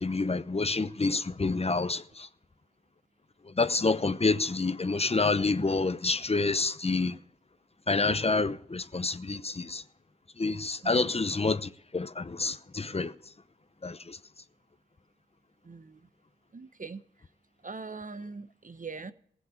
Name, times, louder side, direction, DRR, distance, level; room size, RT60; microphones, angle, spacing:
voice 1, 0.0-2.3 3.6-7.2 7.9-9.8 10.4-13.1 13.8-14.2, left 3 dB, 30° left, 0.8 m, -28 dB
voice 2, 10.8-11.1 15.6-16.1 16.5-17.0 17.6-19.1, right 4 dB, 40° right, 1.0 m, -42 dB
16.0 x 7.3 x 8.5 m
cardioid pair, 40°, 20 cm